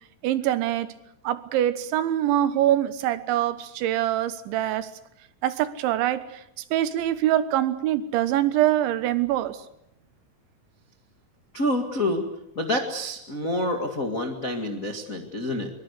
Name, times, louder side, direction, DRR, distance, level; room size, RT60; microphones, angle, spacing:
voice 1, 0.2-0.9 1.3-4.9 5.4-6.2 6.7-9.6, right 12 dB, 80° right, 13 dB, 3.5 m, -24 dB
voice 2, 11.5-12.2 12.5-15.7, left 1 dB, 75° left, 3 dB, 0.7 m, -27 dB
23.5 x 23.0 x 8.3 m, 0.80 s
omnidirectional pair, 5.4 m